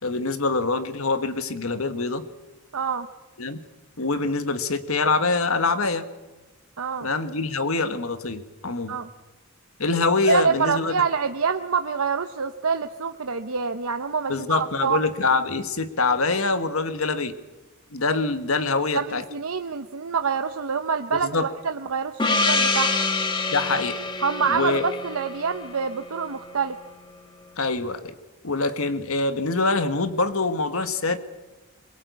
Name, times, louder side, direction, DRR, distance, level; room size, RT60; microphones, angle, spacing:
voice 1, 0.0-2.2 3.4-3.6 4.0-6.0 7.0-9.0 9.8-10.9 14.3-17.3 17.9-19.2 21.1-21.5 23.5-24.0 24.5-24.8 27.6-28.1 28.4-31.2, left 3 dB, 80° left, 10 dB, 1.5 m, -24 dB
voice 2, 2.7-3.1 6.8-7.1 8.9-9.1 10.3-15.0 18.9-22.9 24.2-26.8, right 5 dB, 85° right, 7 dB, 0.8 m, -26 dB
Gong, 22.2-26.5, left 3 dB, 20° left, 1.6 m, -26 dB
22.0 x 22.0 x 8.2 m, 1.1 s
head